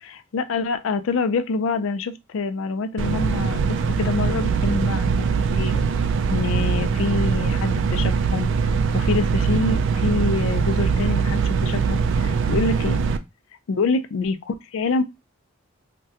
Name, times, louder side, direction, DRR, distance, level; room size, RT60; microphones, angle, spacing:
voice 1, 0.0-5.9 6.3-8.5 8.9-13.0 13.7-15.0, left 4 dB, 60° left, 0.3 m, -26 dB
sound 1, 3.0-13.2, right 5 dB, 55° right, 0.3 m, -22 dB
3.6 x 2.2 x 2.7 m
head